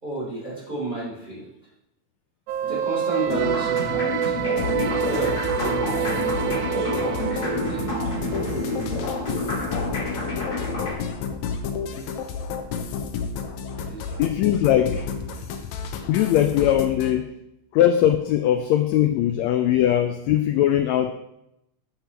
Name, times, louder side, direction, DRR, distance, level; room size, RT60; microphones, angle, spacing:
voice 1, 0.0-1.5 2.6-4.3 4.8-8.2 13.7-14.2, right 2 dB, 15° right, -6 dB, 3.9 m, -33 dB
sound 1, 2.5-9.7, right 10 dB, 80° right, 1.8 m, -28 dB
sound 2, 3.2-10.9, left 2 dB, 30° left, 2.6 m, -29 dB
sound 3, 4.6-17.1, left 6 dB, 70° left, 2.0 m, -31 dB
voice 2, 14.2-15.1 16.1-17.3 17.7-21.1, left 11 dB, 90° left, 8 dB, 1.5 m, -20 dB
10.0 x 9.4 x 3.4 m, 0.84 s
omnidirectional pair, 3.7 m